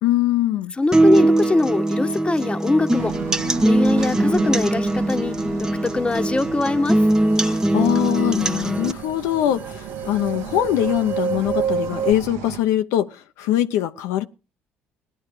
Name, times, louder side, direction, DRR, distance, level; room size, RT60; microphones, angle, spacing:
voice 1, 0.0-0.7 7.4-14.2, left 12 dB, 75° left, 0.7 m, -22 dB
voice 2, 0.8-3.1 3.6-5.4 5.8-7.0, left 3 dB, 20° left, 1.2 m, -22 dB
sound 1, 0.9-8.9, right 1 dB, 10° right, 0.9 m, -20 dB
sound 2, 2.9-12.6, right 9 dB, 75° right, 1.2 m, -36 dB
sound 3, 8.1-8.2 8.4-12.1, right 6 dB, 35° right, 1.1 m, -28 dB
18.0 x 10.5 x 4.8 m
hypercardioid pair, 60°, 5 cm